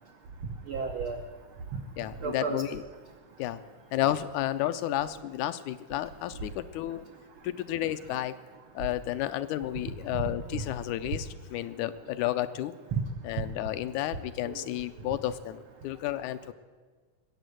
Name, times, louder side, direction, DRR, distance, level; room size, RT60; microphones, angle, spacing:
voice 1, 0.7-1.2 1.7-1.8 2.2-2.6 10.1-10.6 12.9-13.0 13.4-13.5 14.4-14.7, right 5 dB, 85° right, 5 dB, 1.1 m, -32 dB
voice 2, 2.0-2.8 3.4-3.6 3.9-7.1 7.4-8.3 8.8-12.7 13.2-16.5, left 13 dB, 80° left, 11 dB, 1.9 m, -32 dB
20.5 x 8.3 x 7.8 m, 1.4 s
omnidirectional pair, 3.6 m